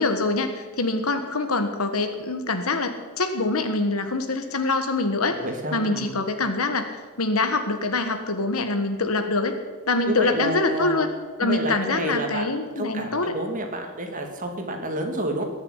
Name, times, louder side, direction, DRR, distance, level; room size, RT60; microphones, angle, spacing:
voice 1, 0.0-5.4 5.7-6.9 7.2-9.6 9.9-11.1 11.4-13.3, left 3 dB, 90° left, 7 dB, 1.5 m, -24 dB
voice 2, 5.4-6.2 10.0-10.9 11.4-15.4, right 1 dB, 35° right, 3 dB, 2.5 m, -29 dB
20.0 x 7.2 x 9.8 m, 1.3 s
head